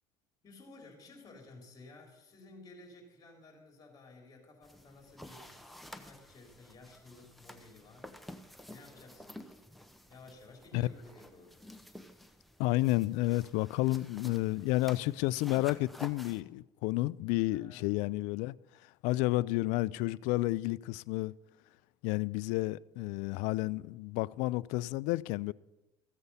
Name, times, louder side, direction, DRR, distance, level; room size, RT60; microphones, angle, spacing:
voice 1, 0.4-8.1 8.7-9.6 10.1-11.6 17.5-17.8, left 2 dB, 30° left, 3.7 m, -54 dB
sound 1, 4.6-16.4, left 1 dB, ahead, 0.9 m, -51 dB
voice 2, 12.6-18.5 19.0-21.3 22.0-25.5, left 19 dB, 75° left, 0.4 m, -31 dB
14.5 x 8.0 x 5.6 m
supercardioid pair, 105°, 13 cm